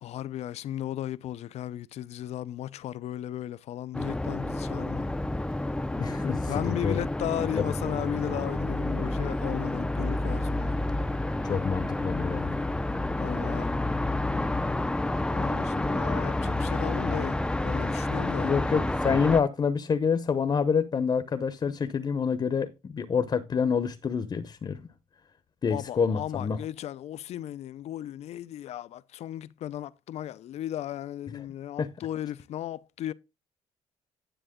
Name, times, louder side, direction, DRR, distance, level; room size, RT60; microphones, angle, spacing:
voice 1, 0.0-5.2 6.5-10.8 13.2-13.7 15.3-18.5 25.7-33.1, left 12 dB, 65° left, 0.5 m, -35 dB
sound 1, 3.9-19.4, left 1 dB, 10° left, 0.6 m, -29 dB
voice 2, 6.0-7.0 7.4-7.6 11.4-12.6 18.4-24.8 25.6-26.6 31.8-31.9, left 6 dB, 40° left, 0.8 m, -27 dB
10.0 x 6.7 x 3.7 m
cardioid pair, 85°, 12 cm